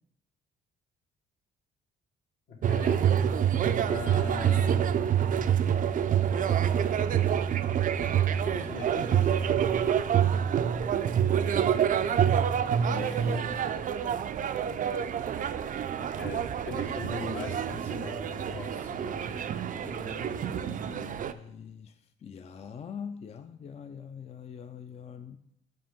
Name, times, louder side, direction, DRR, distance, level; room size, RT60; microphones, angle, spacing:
voice 1, 2.5-3.0 3.9-4.9 8.5-9.8 16.0-19.4, left 3 dB, 70° left, -1 dB, 1.7 m, -40 dB
sound 1, 2.6-21.3, right 9 dB, 45° right, 0.4 m, -27 dB
voice 2, 12.9-14.2 19.7-25.4, left 7 dB, 30° left, 8 dB, 0.4 m, -43 dB
7.7 x 5.1 x 3.5 m, 0.79 s
cardioid pair, 90°, 20 cm